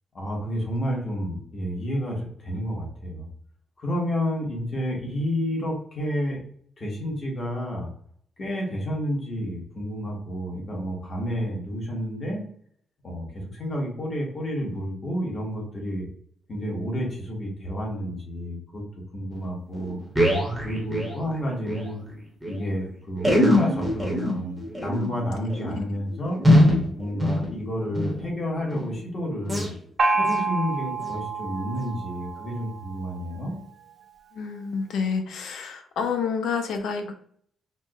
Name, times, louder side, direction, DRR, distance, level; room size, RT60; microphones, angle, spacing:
voice 1, 0.1-3.3 3.8-6.4 6.8-7.9 8.4-12.4 13.0-16.1 16.5-18.8 19.1-20.0 20.6-22.0 22.4-26.4 26.9-29.7 30.1-33.6, equal, 30° left, -2 dB, 1.0 m, -30 dB
sound 1, 19.4-19.5 19.7-21.9 22.1-22.2 22.4-22.6 23.2-28.2 28.6-29.0 29.4-29.7 30.2-30.5 31.0-31.1 31.8-31.9, left 1 dB, 5° right, 0.8 m, -23 dB
Gong, 30.0-33.5, right 3 dB, 40° right, 0.4 m, -28 dB
voice 2, 34.3-37.1, left 6 dB, 80° left, 6 dB, 0.5 m, -29 dB
4.3 x 2.0 x 2.3 m, 0.62 s
wide cardioid pair, 165°, 0 cm